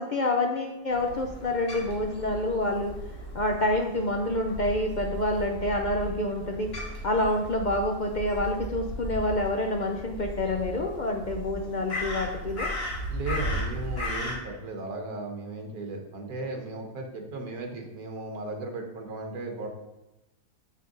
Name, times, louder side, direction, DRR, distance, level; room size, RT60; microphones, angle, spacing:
voice 1, 0.0-2.9 3.3-6.7 7.0-12.7, left 1 dB, 60° left, 2 dB, 0.4 m, -27 dB
Crow, 0.9-14.4, equal, 40° left, 1.8 m, -36 dB
voice 2, 13.1-19.7, right 2 dB, 70° right, 3 dB, 1.7 m, -36 dB
7.3 x 5.9 x 3.9 m, 0.97 s
omnidirectional pair, 1.7 m